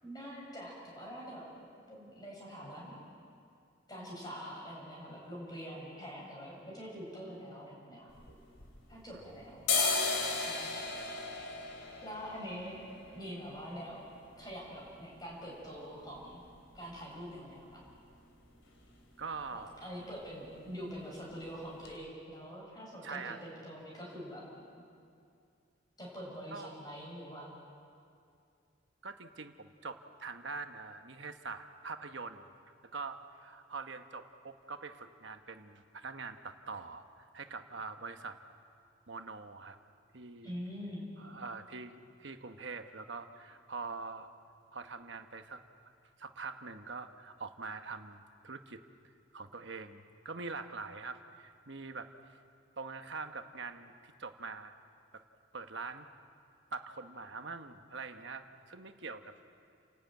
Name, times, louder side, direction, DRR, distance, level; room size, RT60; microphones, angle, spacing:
voice 1, 0.0-1.4 1.9-3.0 3.9-8.1 8.9-9.6 10.4-10.8 12.0-12.8 13.1-14.0 14.4-16.4 16.7-17.9 19.5-24.4 26.0-27.6 40.4-41.1, equal, 20° left, -4 dB, 6.9 m, -45 dB
sound 1, 8.1-9.2 9.5-17.2 17.5-17.6 17.9-18.5 18.8-19.0 19.2-19.5 19.8-20.5 20.8-21.0 21.5-21.6 21.8-21.9, left 4 dB, 65° left, 3.3 m, -37 dB
voice 2, 19.2-19.7 23.0-23.4 26.5-26.7 29.0-32.5 32.8-38.4 39.1-39.8 40.1-40.5 41.2-44.3 44.7-45.6 46.2-48.8 49.3-52.4 52.8-54.7 55.1-55.2 55.5-56.1 56.7-59.3, right 4 dB, 65° right, 7 dB, 1.2 m, -44 dB
30.0 x 12.5 x 9.2 m, 2.4 s
head